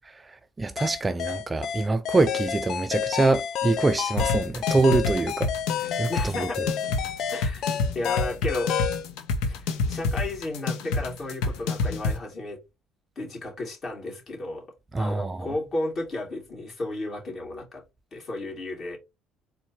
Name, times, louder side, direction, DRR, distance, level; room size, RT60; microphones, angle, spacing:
voice 1, 0.2-5.5 5.8-6.7 14.9-15.5, right 3 dB, 20° right, 0.3 m, -25 dB
sound 1, 0.8-9.1, left 8 dB, 60° left, 0.5 m, -30 dB
sound 2, 4.2-12.2, left 3 dB, 85° left, 0.9 m, -27 dB
voice 2, 6.0-6.7 7.3-8.7 9.4-12.6 13.2-14.7 15.0-17.8 18.1-19.0, left 2 dB, 35° left, 2.7 m, -33 dB
4.2 x 2.5 x 4.3 m
cardioid pair, 115°, 0 cm